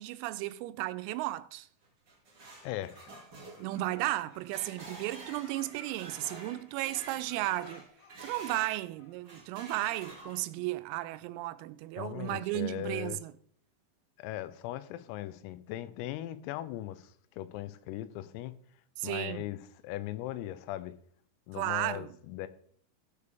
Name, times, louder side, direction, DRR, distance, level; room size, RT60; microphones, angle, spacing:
voice 1, 0.0-1.7 3.6-7.8 8.2-13.3 19.0-19.5 21.5-22.1, right 17 dB, 90° right, 3.3 m, -34 dB
sound 1, 1.8-8.8 9.2-10.7, right 2 dB, 50° right, 1.3 m, -49 dB
voice 2, 2.6-3.1 12.0-13.2 14.2-18.6 19.0-20.9 21.5-22.5, left 14 dB, 85° left, 3.4 m, -39 dB
Laughter, 3.3-5.0 5.3-6.8 7.2-9.5, left 4 dB, 70° left, 1.3 m, -56 dB
16.0 x 6.7 x 3.4 m
omnidirectional pair, 5.9 m